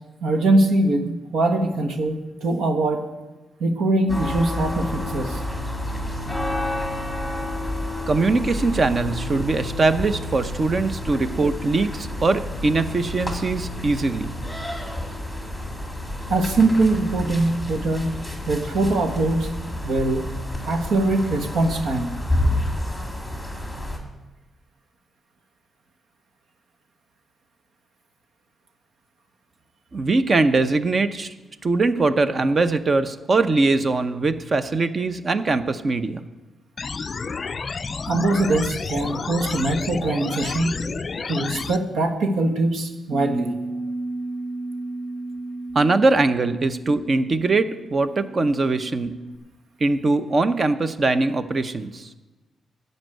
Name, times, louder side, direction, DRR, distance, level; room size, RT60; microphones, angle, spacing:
voice 1, 0.2-3.0 3.6-5.4 16.3-18.2 18.5-19.5 19.8-20.3 20.7-22.2 38.1-40.8 41.3-43.6, right 2 dB, 80° right, 4 dB, 1.4 m, -22 dB
sound 1, 4.1-24.0, left 1 dB, ahead, 1.8 m, -29 dB
voice 2, 8.1-14.3 29.9-31.3 31.6-36.2 45.7-49.1 49.8-52.1, right 3 dB, 30° right, 11 dB, 0.6 m, -21 dB
sound 2, 36.8-41.8, left 5 dB, 30° left, 0.4 m, -30 dB
Bass guitar, 43.1-49.4, right 2 dB, 60° right, 1.0 m, -33 dB
14.0 x 5.4 x 9.1 m, 1.1 s
wide cardioid pair, 170°, 0 cm